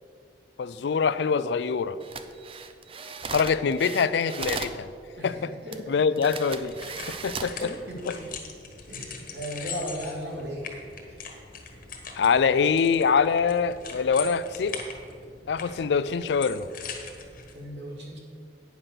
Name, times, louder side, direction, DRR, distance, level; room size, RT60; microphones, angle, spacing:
voice 1, 0.6-2.0 3.3-4.9 5.2-5.5 5.9-6.7 7.2-7.7 8.1-8.2 12.2-14.8 15.5-16.7, left 5 dB, 70° left, 15 dB, 0.4 m, -24 dB
sound 1, 2.0-4.8 5.7-5.8 6.2-7.6 8.2-8.4, right 5 dB, 30° right, 0.5 m, -36 dB
voice 2, 5.2-6.0 7.4-8.3 8.9-10.6 17.5-18.2, equal, 75° right, -2 dB, 2.5 m, -36 dB
sound 2, 6.7-17.5, left 5 dB, 50° left, 1.3 m, -41 dB
9.3 x 5.9 x 6.7 m, 2.2 s
head